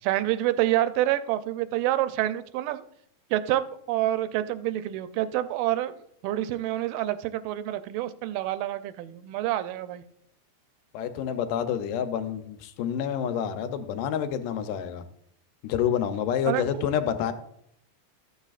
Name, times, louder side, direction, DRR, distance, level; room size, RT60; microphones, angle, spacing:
voice 1, 0.0-2.8 3.3-5.9 6.2-10.0 16.5-16.6, right 14 dB, 85° right, 12 dB, 2.2 m, -27 dB
voice 2, 10.9-15.0 15.6-17.3, left 8 dB, 80° left, 9 dB, 2.2 m, -28 dB
14.5 x 8.1 x 2.4 m, 0.71 s
omnidirectional pair, 3.9 m